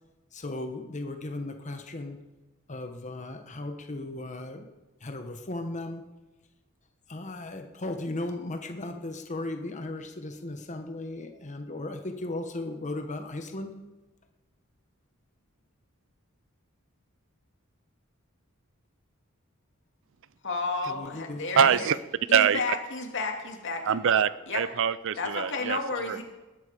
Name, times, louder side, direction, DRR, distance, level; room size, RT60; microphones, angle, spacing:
voice 1, 0.3-2.2 2.7-4.6 5.0-6.0 7.1-13.8 20.9-21.7, left 2 dB, 35° left, 5 dB, 1.2 m, -36 dB
voice 2, 20.4-21.9 22.3-23.8 24.5-24.6 25.2-26.2, left 3 dB, 60° left, 2 dB, 2.5 m, -32 dB
voice 3, 21.6-22.0 22.3-22.8 23.8-26.2, right 7 dB, 65° right, 17 dB, 0.5 m, -24 dB
20.0 x 10.5 x 5.1 m, 1.1 s
head